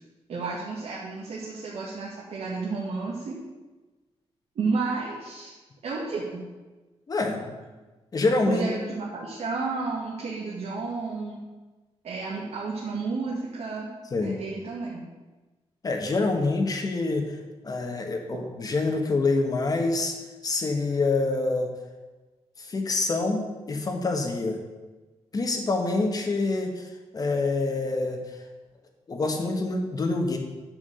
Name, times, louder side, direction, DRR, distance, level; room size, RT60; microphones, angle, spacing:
voice 1, 0.3-3.4 4.6-5.5 5.8-6.5 8.5-11.4 12.0-13.9 14.2-15.0, right 4 dB, 75° right, -5 dB, 2.0 m, -31 dB
voice 2, 7.1-7.5 8.1-8.6 14.1-14.4 15.8-17.3 17.6-20.1 20.4-21.7 22.7-24.6 25.3-26.9 27.1-28.2 29.1-30.4, left 3 dB, 35° left, 3 dB, 1.4 m, -26 dB
10.5 x 5.0 x 7.7 m, 1.2 s
wide cardioid pair, 170°, 11 cm